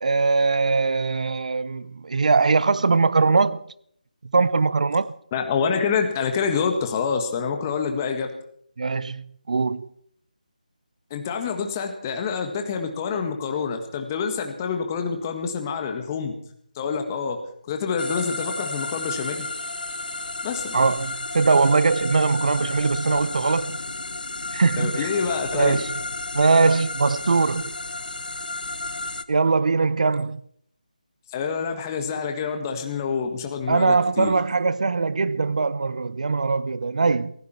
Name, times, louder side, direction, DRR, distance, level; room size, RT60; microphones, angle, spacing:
voice 1, 0.0-3.6 4.2-5.1 8.8-9.9 20.7-23.8 24.5-25.1 25.5-26.0 26.3-27.7 29.3-30.4 33.7-37.3, right 4 dB, 55° right, 0.7 m, -21 dB
voice 2, 5.3-8.3 11.1-16.3 16.7-17.4 17.7-19.5 20.4-20.8 24.8-25.8 31.3-34.3, left 6 dB, 20° left, 1.7 m, -27 dB
sound 1, 18.0-29.2, left 2 dB, 85° left, 1.0 m, -32 dB
20.5 x 16.0 x 4.5 m
figure-of-eight pair, 160°, 5 cm